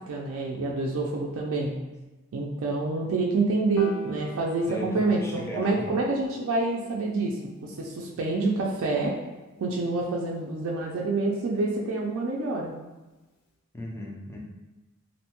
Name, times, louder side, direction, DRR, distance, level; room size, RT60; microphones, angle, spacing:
voice 1, 0.1-1.8 2.3-9.2 9.6-12.7, right 3 dB, 65° right, -2 dB, 0.3 m, -27 dB
Piano, 3.8-10.1, right 1 dB, 80° left, 0.4 m, -45 dB
voice 2, 4.7-5.9 13.7-14.4, left 1 dB, 10° left, -2 dB, 0.3 m, -36 dB
2.6 x 2.1 x 2.8 m, 1.1 s
head